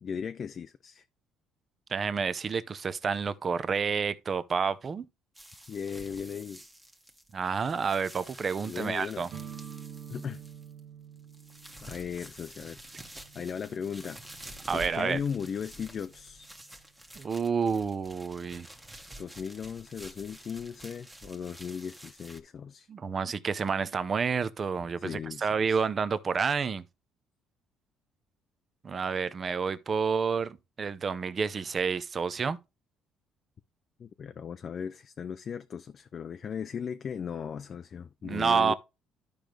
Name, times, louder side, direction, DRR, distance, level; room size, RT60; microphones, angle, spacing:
voice 1, 0.0-1.0 5.7-6.6 8.6-9.3 10.1-10.4 11.8-12.8 13.3-14.2 14.7-16.5 19.2-22.9 25.0-25.8 34.0-38.7, left 7 dB, 40° left, 0.4 m, -37 dB
voice 2, 1.9-5.0 7.3-9.3 14.7-15.2 17.2-18.7 22.9-26.8 28.8-32.6 38.2-38.7, right 5 dB, 35° right, 0.6 m, -29 dB
sound 1, 5.3-10.8 11.2-22.4, right 1 dB, 10° right, 1.2 m, -49 dB
sound 2, 9.3-16.9, right 8 dB, 65° right, 1.2 m, -49 dB
12.0 x 5.2 x 3.1 m
cardioid pair, 115°, 0 cm